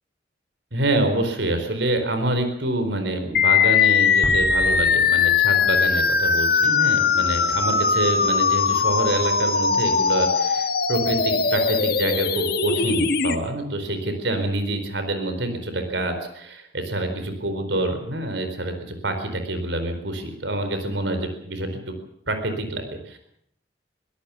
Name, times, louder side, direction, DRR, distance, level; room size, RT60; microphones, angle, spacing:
voice 1, 0.7-22.0 22.3-23.2, right 1 dB, 80° right, 7 dB, 4.2 m, -26 dB
sound 1, 3.3-13.3, left 5 dB, 55° left, 1.5 m, -20 dB
sound 2, 4.2-7.2, equal, ahead, 4.0 m, -35 dB
22.5 x 17.0 x 7.1 m, 0.69 s
head